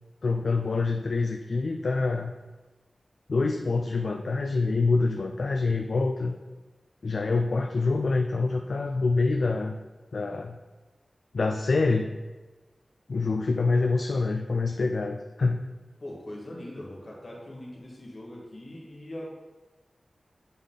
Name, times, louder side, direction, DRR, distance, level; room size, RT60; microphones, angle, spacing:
voice 1, 0.2-2.3 3.3-6.3 7.0-9.8 10.1-10.6 11.3-12.1 13.1-15.6, left 3 dB, 65° left, 4 dB, 0.3 m, -26 dB
voice 2, 16.0-19.3, left 1 dB, 50° left, -3 dB, 1.7 m, -41 dB
8.2 x 3.5 x 3.9 m, 1.2 s
wide cardioid pair, 105°, 0 cm